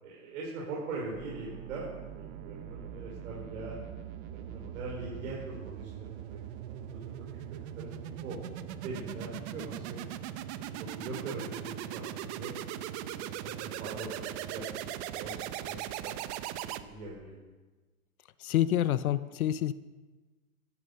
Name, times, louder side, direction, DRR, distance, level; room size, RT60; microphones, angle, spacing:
voice 1, 0.0-1.9 2.1-3.8 4.3-7.9 8.2-8.3 8.8-10.1 10.6-12.5 13.0-16.1 16.6-17.3, right 3 dB, 65° right, -4 dB, 5.5 m, -42 dB
sound 1, 1.1-17.2, right 11 dB, 50° right, 1.1 m, -40 dB
voice 2, 18.4-19.7, left 12 dB, 75° left, 15 dB, 0.8 m, -27 dB
13.5 x 13.0 x 6.9 m, 1.3 s
hypercardioid pair, 125°, 43 cm